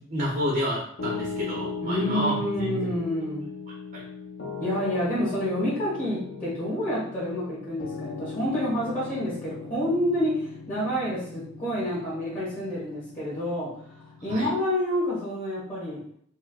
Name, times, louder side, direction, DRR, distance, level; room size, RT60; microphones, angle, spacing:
voice 1, 0.1-3.0 3.9-4.0 14.3-14.5, equal, 45° right, -4 dB, 0.6 m, -29 dB
Piano, 1.0-14.3, left 5 dB, 85° left, 0.6 m, -39 dB
voice 2, 1.8-3.4 4.6-13.7 14.2-16.0, equal, 35° left, -10 dB, 1.3 m, -28 dB
4.4 x 2.0 x 2.3 m, 0.65 s
head